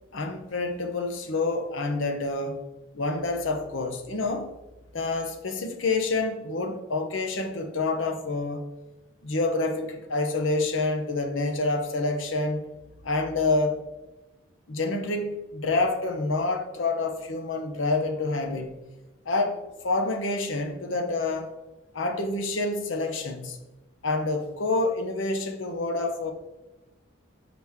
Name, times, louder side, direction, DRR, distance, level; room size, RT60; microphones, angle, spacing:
voice 1, 0.1-2.6 2.9-4.5 4.9-8.6 9.2-12.6 13.0-13.8 14.7-18.8 19.3-21.5 21.9-23.6 24.0-26.3, left 3 dB, 80° left, 0.9 m, -27 dB
6.1 x 6.0 x 3.6 m
head